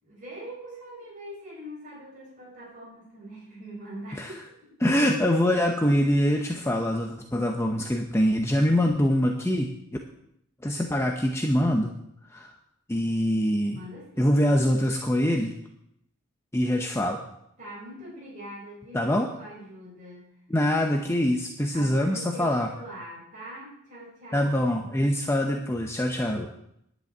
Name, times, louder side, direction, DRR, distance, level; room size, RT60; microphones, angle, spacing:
voice 1, 0.0-4.5 13.7-14.3 17.6-20.3 21.7-24.8 26.3-26.5, right 1 dB, 35° right, -5 dB, 5.5 m, -43 dB
voice 2, 4.8-9.7 10.6-11.9 12.3-12.5 12.9-13.8 14.2-15.5 16.5-17.2 18.9-19.3 20.5-22.7 24.3-26.5, equal, 10° left, 2 dB, 0.8 m, -24 dB
10.5 x 6.4 x 8.5 m, 0.74 s
head